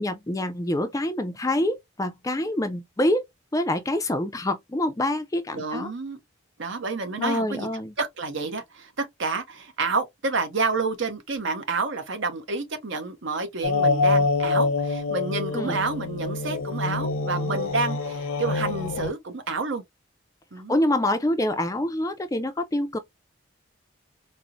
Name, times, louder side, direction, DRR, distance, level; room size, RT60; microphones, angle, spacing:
voice 1, 0.0-3.2 3.5-5.9 7.2-7.9 15.5-15.8 20.7-23.0, left 1 dB, 15° left, 0.3 m, -26 dB
voice 2, 5.5-6.2 6.6-7.7 8.0-19.8 20.5-20.8, right 3 dB, 60° right, 0.8 m, -29 dB
sound 1, 13.6-19.1, left 3 dB, 85° left, 0.6 m, -25 dB
4.2 x 2.0 x 2.4 m
head